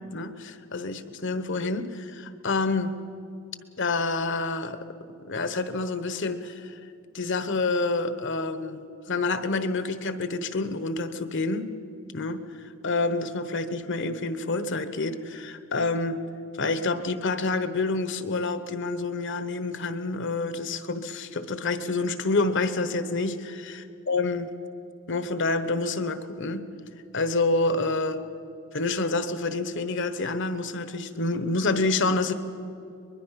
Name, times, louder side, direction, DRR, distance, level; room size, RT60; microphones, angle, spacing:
voice 1, 0.1-2.9 3.8-4.9 5.2-6.8 7.1-11.7 12.1-16.2 16.6-23.7 24.1-24.5 25.1-26.6 27.1-28.2 28.7-32.3, left 3 dB, 60° left, 11 dB, 1.1 m, -28 dB
23.0 x 21.5 x 5.8 m, 2.7 s
head